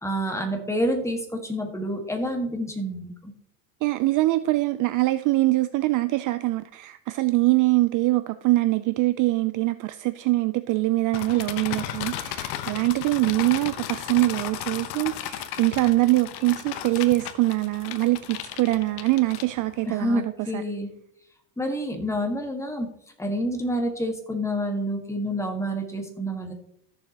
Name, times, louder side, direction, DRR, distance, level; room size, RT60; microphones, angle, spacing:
voice 1, 0.0-3.3 19.9-20.9 21.6-22.9 23.2-26.5, equal, 5° left, 1.6 m, -28 dB
voice 2, 3.8-20.2 20.5-20.6, right 19 dB, 45° right, 0.4 m, -23 dB
sound 1, 11.1-19.9, left 11 dB, 60° left, 1.0 m, -35 dB
14.0 x 7.0 x 2.9 m
supercardioid pair, 115°, 45 cm